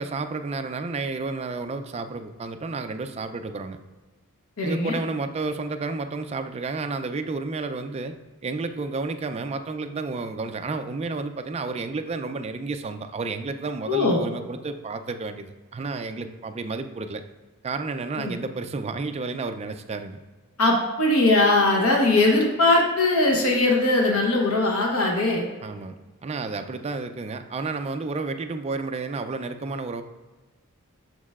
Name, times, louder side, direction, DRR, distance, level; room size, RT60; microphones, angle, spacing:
voice 1, 0.0-3.8 4.6-8.1 8.4-17.2 17.6-20.2 25.6-25.9 26.2-30.0, right 3 dB, 30° right, 8 dB, 0.4 m, -31 dB
voice 2, 4.6-4.9 13.9-14.2 18.2-18.3 20.6-25.5, left 2 dB, 70° left, 0 dB, 1.0 m, -20 dB
6.4 x 6.2 x 2.4 m, 1.3 s
head